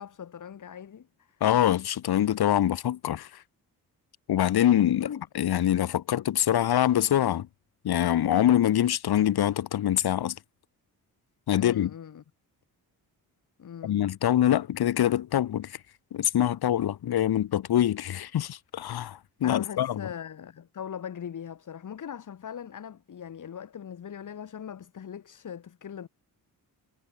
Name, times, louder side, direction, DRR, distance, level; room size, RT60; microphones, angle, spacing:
voice 1, 0.0-1.4 5.0-5.3 11.5-12.2 13.6-14.0 19.4-26.1, left 8 dB, 50° left, 5.8 m, -40 dB
voice 2, 1.4-3.4 4.3-5.1 5.3-7.5 7.8-10.4 11.5-11.9 13.8-15.8 16.1-20.0, left 11 dB, 75° left, 2.8 m, -24 dB
wide cardioid pair, 155°, 38 cm